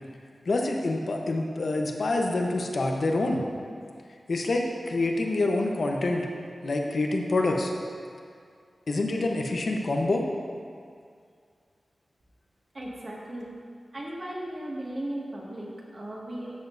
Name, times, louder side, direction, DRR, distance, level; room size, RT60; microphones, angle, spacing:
voice 1, 0.4-3.4 4.3-6.3 6.6-7.7 8.9-10.2, left 2 dB, 65° left, 1 dB, 0.9 m, -26 dB
voice 2, 12.7-13.5 13.9-16.5, right 1 dB, 50° right, -4 dB, 1.9 m, -36 dB
13.0 x 7.1 x 2.7 m, 2.2 s
wide cardioid pair, 75°, 0 cm